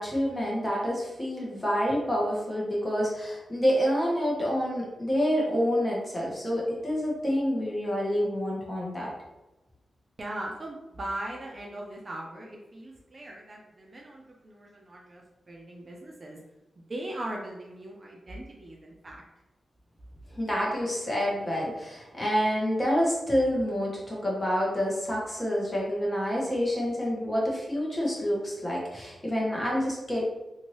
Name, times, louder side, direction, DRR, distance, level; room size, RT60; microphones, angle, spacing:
voice 1, 0.0-9.1 20.3-30.2, equal, 20° left, -4 dB, 1.0 m, -28 dB
voice 2, 10.2-16.4 16.9-19.2, right 1 dB, 35° right, -1 dB, 0.4 m, -39 dB
2.7 x 2.6 x 3.1 m, 1.0 s
wide cardioid pair, 130°, 0 cm